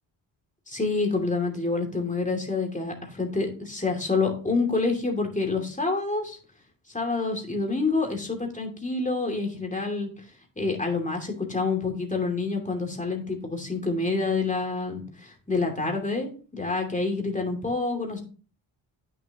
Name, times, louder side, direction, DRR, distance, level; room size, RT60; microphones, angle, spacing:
voice 1, 0.7-6.4 6.9-10.1 10.6-18.2, left 3 dB, 15° left, 2 dB, 2.7 m, -27 dB
8.7 x 6.8 x 3.0 m, 0.37 s
supercardioid pair, 55°, 46 cm